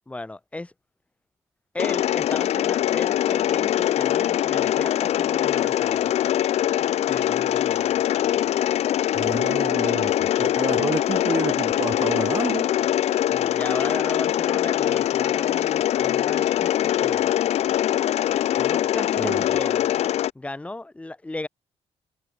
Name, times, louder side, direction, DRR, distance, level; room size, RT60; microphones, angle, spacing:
voice 1, 0.1-0.7 1.7-6.1 7.1-8.0 9.6-10.1 13.3-17.3 18.6-19.9 20.3-21.5, left 2 dB, 10° left, 1.4 m, -35 dB
Mechanisms, 1.8-20.3, left 12 dB, 70° left, 0.6 m, -23 dB
voice 2, 9.1-12.7 19.2-19.4, right 6 dB, 25° right, 0.5 m, -29 dB
cardioid pair, 150°, 12 cm